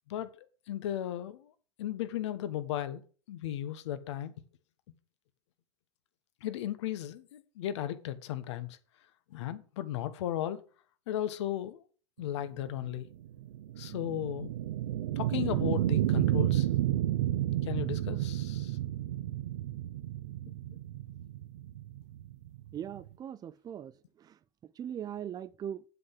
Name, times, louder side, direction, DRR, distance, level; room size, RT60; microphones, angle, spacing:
voice 1, 0.1-1.5 1.8-3.0 3.3-4.3 6.4-8.8 9.3-10.6 11.1-11.8 12.2-13.1 13.8-14.5 15.1-16.7 17.6-18.8 20.7-20.8, left 12 dB, 80° left, 1.3 m, -36 dB
sound 1, 12.4-23.1, right 13 dB, 85° right, 0.7 m, -31 dB
voice 2, 22.7-24.4 24.8-25.8, right 9 dB, 25° right, 0.6 m, -40 dB
7.6 x 6.0 x 7.7 m
supercardioid pair, 120°, 15 cm